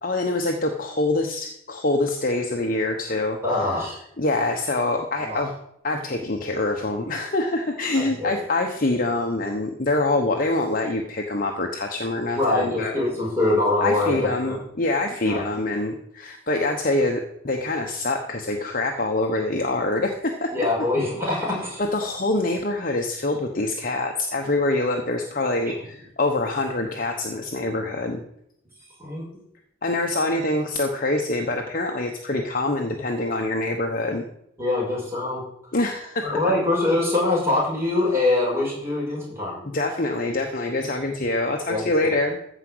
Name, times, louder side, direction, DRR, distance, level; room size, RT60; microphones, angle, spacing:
voice 1, 0.0-3.4 3.6-3.8 4.2-5.5 5.8-13.0 13.8-20.5 21.8-28.2 29.8-34.2 35.7-36.4 39.7-42.4, left 2 dB, 40° left, 2 dB, 1.1 m, -25 dB
voice 2, 3.4-4.0 5.2-5.5 8.0-8.4 12.3-14.6 15.2-15.4 20.5-21.8 29.0-29.3 34.6-35.4 36.2-39.6 41.6-42.1, left 2 dB, 10° right, -4 dB, 5.6 m, -24 dB
14.5 x 5.1 x 7.9 m, 0.75 s
head